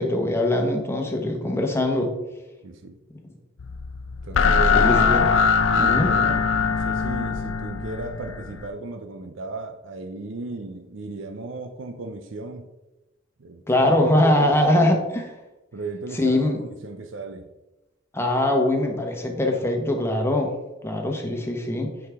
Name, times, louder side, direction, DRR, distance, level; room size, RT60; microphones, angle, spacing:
voice 1, 0.0-2.1 4.7-5.3 5.8-6.2 13.7-15.2 16.1-16.6 18.1-20.5 20.8-21.9, left 1 dB, 15° left, 2 dB, 1.1 m, -22 dB
voice 2, 2.6-3.0 4.2-4.8 5.7-12.7 13.4-13.6 14.2-15.0 15.7-17.5, right 3 dB, 70° right, 7 dB, 0.6 m, -35 dB
sound 1, 3.6-8.7, left 5 dB, 80° left, 0.6 m, -21 dB
9.6 x 4.9 x 3.5 m, 1.0 s
head